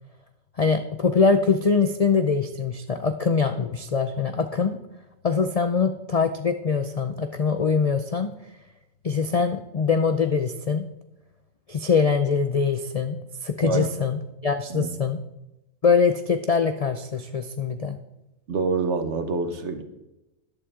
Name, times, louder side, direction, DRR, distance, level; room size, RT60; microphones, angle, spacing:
voice 1, 0.6-4.8 5.2-8.3 9.0-10.9 11.7-15.2 15.8-18.0, left 5 dB, 60° left, 8 dB, 0.3 m, -23 dB
voice 2, 18.5-19.8, right 4 dB, 60° right, 8 dB, 1.4 m, -26 dB
13.0 x 11.5 x 3.7 m, 0.94 s
omnidirectional pair, 1.4 m